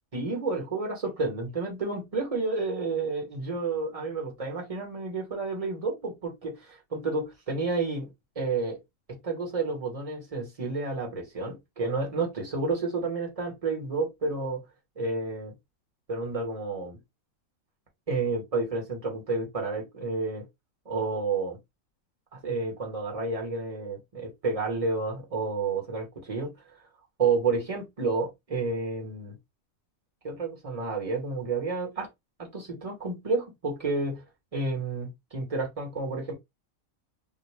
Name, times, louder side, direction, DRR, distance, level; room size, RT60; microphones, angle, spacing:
voice 1, 0.1-8.1 8.4-8.8 9.1-14.6 15.0-15.5 16.1-17.0 18.1-20.5 20.8-21.6 22.3-26.5 27.2-29.4 30.2-32.1 32.4-34.2 34.5-36.3, right 3 dB, 30° right, 0.8 m, -30 dB
2.5 x 2.1 x 3.1 m
omnidirectional pair, 1.4 m